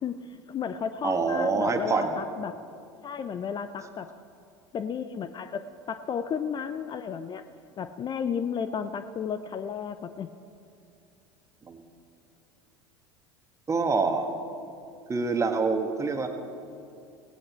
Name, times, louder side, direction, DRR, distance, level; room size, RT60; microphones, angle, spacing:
voice 1, 0.0-2.6 3.0-4.1 4.7-7.4 7.8-10.4, left 7 dB, 35° left, 11 dB, 0.6 m, -33 dB
voice 2, 1.0-2.1 11.6-11.8 13.7-14.3 15.1-16.3, right 4 dB, 20° right, 5 dB, 1.7 m, -26 dB
17.0 x 16.0 x 4.5 m, 2.5 s
hypercardioid pair, 75°, 14 cm